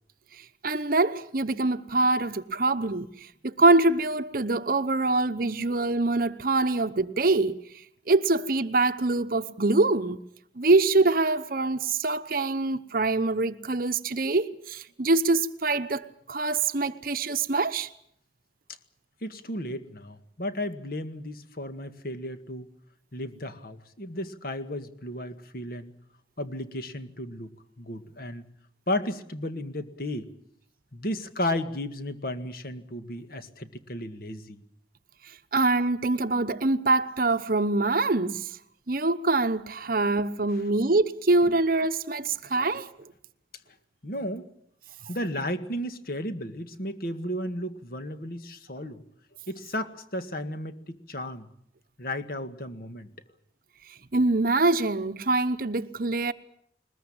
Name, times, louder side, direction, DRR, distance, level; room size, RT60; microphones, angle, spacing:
voice 1, 0.6-3.1 3.4-7.6 8.1-10.2 10.6-17.9 35.5-38.5 38.9-42.9 54.1-56.3, right 2 dB, 50° right, 0.9 m, -24 dB
voice 2, 19.2-22.7 23.1-25.9 26.4-28.5 28.9-30.3 30.9-34.6 41.4-41.6 44.0-44.5 45.1-49.0 49.5-51.5 52.0-53.1, left 1 dB, 55° left, 1.9 m, -34 dB
21.0 x 21.0 x 8.8 m
head